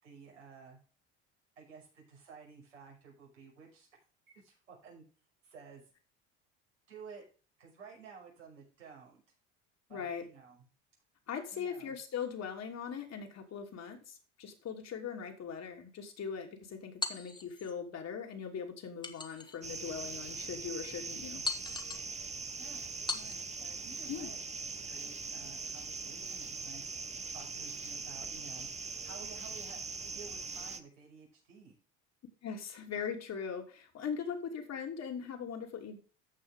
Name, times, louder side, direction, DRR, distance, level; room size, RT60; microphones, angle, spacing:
voice 1, 0.0-0.8 1.6-3.9 4.3-5.0 5.4-5.8 6.9-7.2 7.6-9.2 9.9-10.7 11.5-11.9 22.6-24.4 24.8-26.8 27.3-28.7 29.0-31.7, right 5 dB, 90° right, -1 dB, 5.9 m, -53 dB
voice 2, 9.9-10.3 11.3-21.4 24.1-24.3 32.4-36.0, left 7 dB, 45° left, 3 dB, 3.0 m, -40 dB
sound 1, 17.0-17.8 19.0-19.8 20.4-20.5 21.4-22.1 23.1-23.6, left 3 dB, 10° left, 1.9 m, -39 dB
sound 2, 19.6-30.8, right 4 dB, 20° right, 1.2 m, -41 dB
15.0 x 5.7 x 3.6 m, 0.36 s
hypercardioid pair, 70°, 35 cm